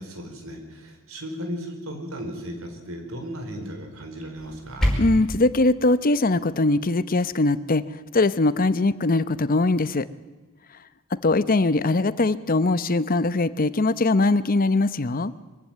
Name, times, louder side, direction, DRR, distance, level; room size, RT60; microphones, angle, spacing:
voice 1, 0.0-4.9, equal, 75° right, 5 dB, 4.8 m, -35 dB
sound 1, 4.4-5.4, equal, 5° left, 4.8 m, -25 dB
voice 2, 5.0-7.9 8.1-10.1 11.2-15.3, left 2 dB, 40° left, 15 dB, 0.8 m, -21 dB
23.5 x 15.0 x 9.3 m, 1.3 s
head